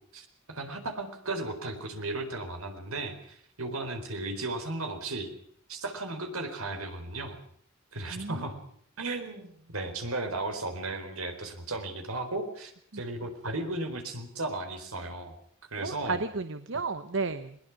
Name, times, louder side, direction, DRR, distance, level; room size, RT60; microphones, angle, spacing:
voice 1, 0.1-5.3 5.7-7.4 7.9-8.6 9.0-15.3 15.7-16.2, right 2 dB, 75° right, 7 dB, 4.3 m, -35 dB
voice 2, 8.1-8.5 12.9-13.0 15.8-17.6, right 4 dB, 60° right, 11 dB, 0.9 m, -33 dB
21.0 x 21.0 x 6.0 m, 0.64 s
head